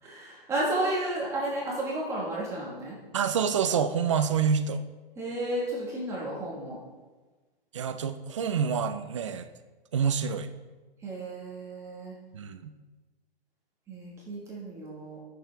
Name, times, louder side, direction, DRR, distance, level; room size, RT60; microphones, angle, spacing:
voice 1, 0.0-3.0 5.1-6.8 11.0-12.1 13.9-15.2, right 1 dB, 10° right, -6 dB, 1.4 m, -32 dB
voice 2, 3.1-4.8 7.7-9.5 9.9-10.5 12.3-12.7, right 7 dB, 30° right, 9 dB, 0.5 m, -27 dB
15.0 x 6.8 x 3.4 m, 1.3 s
hypercardioid pair, 165°, 30 cm